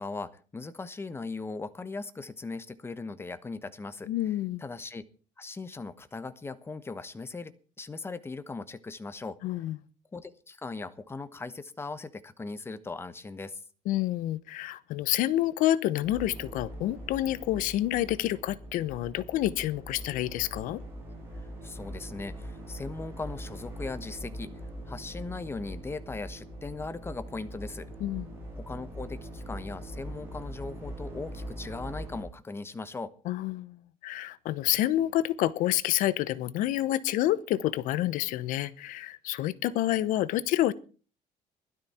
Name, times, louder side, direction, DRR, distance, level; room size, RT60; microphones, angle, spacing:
voice 1, 0.0-5.0 5.4-9.4 10.1-13.6 21.6-24.5 24.9-27.9 28.6-33.1, left 3 dB, 15° left, 13 dB, 1.1 m, -39 dB
voice 2, 4.1-4.6 9.4-9.8 13.9-20.8 28.0-28.3 33.2-40.7, left 14 dB, 70° left, 18 dB, 0.9 m, -28 dB
sound 1, 16.0-32.2, equal, 15° right, 7.9 m, -42 dB
16.5 x 12.5 x 4.4 m, 0.38 s
cardioid pair, 120°, 14 cm